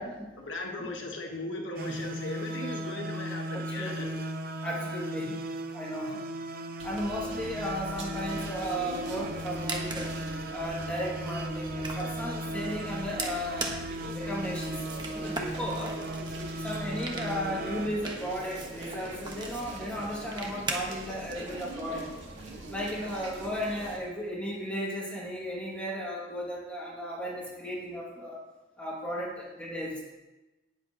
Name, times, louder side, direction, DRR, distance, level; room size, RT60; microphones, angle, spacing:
voice 1, 0.4-4.1, left 2 dB, 85° left, 1 dB, 1.4 m, -37 dB
sound 1, 1.8-17.9, right 1 dB, 50° right, 0.8 m, -36 dB
voice 2, 3.5-4.2 4.6-5.4 5.7-6.2 6.8-10.1 10.5-13.7 14.1-14.8 15.1-16.0 16.6-22.1 22.7-28.4 28.8-30.0, equal, 5° left, -5 dB, 2.4 m, -35 dB
sound 2, 6.8-24.0, right 1 dB, 80° right, 2.0 m, -43 dB
sound 3, 9.3-21.3, right 3 dB, 25° right, 1.2 m, -41 dB
18.5 x 7.3 x 3.0 m, 1.1 s
head